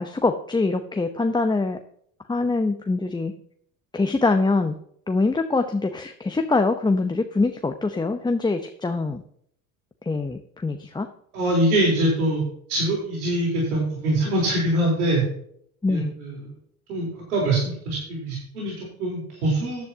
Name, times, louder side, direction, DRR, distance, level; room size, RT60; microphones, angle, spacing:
voice 1, 0.0-1.8 2.3-3.3 3.9-4.7 5.1-9.2 10.0-11.1 15.8-16.1, left 3 dB, 10° left, 6 dB, 0.8 m, -24 dB
voice 2, 11.3-12.4 12.7-15.2 15.9-16.4 16.9-19.8, right 1 dB, 85° right, -3 dB, 4.0 m, -23 dB
14.5 x 10.5 x 2.9 m, 0.68 s
hypercardioid pair, 75°, 43 cm